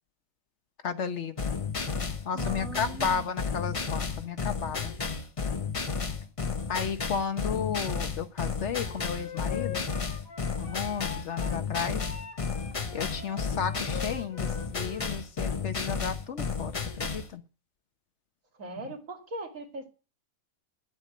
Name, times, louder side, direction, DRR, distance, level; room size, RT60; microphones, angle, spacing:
voice 1, 0.8-1.5 2.2-4.9 6.7-9.9 10.6-12.0 12.9-17.4, left 7 dB, 60° left, 1.1 m, -33 dB
sound 1, 1.4-17.3, left 5 dB, 30° left, 0.8 m, -32 dB
voice 2, 2.3-3.2 18.6-19.9, right 3 dB, 70° right, 2.8 m, -39 dB
Wind instrument woodwind instrument, 8.8-11.6 12.0-15.1, left 7 dB, 75° left, 2.2 m, -43 dB
10.5 x 8.2 x 8.5 m
omnidirectional pair, 1.4 m